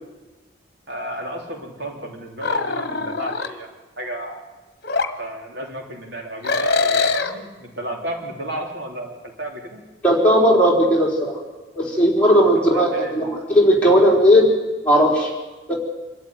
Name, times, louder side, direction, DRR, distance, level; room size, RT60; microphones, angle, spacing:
voice 1, 0.9-4.4 5.2-9.8 12.7-13.2, right 1 dB, 70° right, 1 dB, 3.5 m, -33 dB
sound 1, 2.4-3.5 4.8-5.1 6.4-7.3, left 4 dB, 55° left, 1.3 m, -22 dB
voice 2, 10.0-11.4 11.7-14.5 14.8-15.3 15.7-15.8, equal, 5° left, -3 dB, 4.2 m, -16 dB
26.0 x 13.0 x 9.6 m, 1.2 s
head